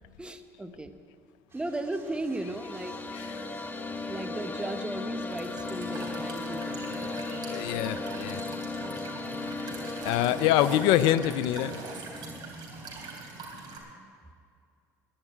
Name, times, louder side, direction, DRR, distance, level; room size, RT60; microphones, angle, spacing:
voice 1, 0.2-0.9 1.5-3.0 4.1-7.1, right 2 dB, 10° right, 8 dB, 1.0 m, -36 dB
sound 1, 1.5-13.1, right 3 dB, 30° right, 2.8 m, -54 dB
sound 2, 2.1-12.4, left 3 dB, 20° left, 1.1 m, -36 dB
Walk footsteps / Chirp tweet / Stream, 5.3-13.8, right 3 dB, 55° right, 3.3 m, -42 dB
voice 2, 7.5-8.4 10.0-11.8, left 12 dB, 70° left, 15 dB, 0.5 m, -25 dB
11.0 x 10.0 x 9.2 m, 2.3 s
hypercardioid pair, 70°, 9 cm